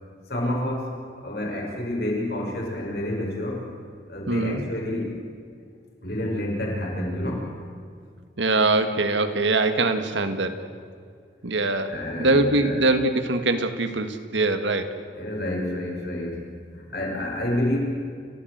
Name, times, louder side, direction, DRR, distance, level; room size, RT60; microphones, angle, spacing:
voice 1, 0.3-3.7 4.1-5.1 6.0-7.5 11.9-12.9 15.1-17.8, left 1 dB, 55° left, -1 dB, 6.1 m, -29 dB
voice 2, 4.3-4.6 8.4-10.6 11.4-11.9 12.2-14.9, right 2 dB, 80° right, 8 dB, 1.8 m, -23 dB
30.0 x 15.0 x 8.1 m, 2.2 s
head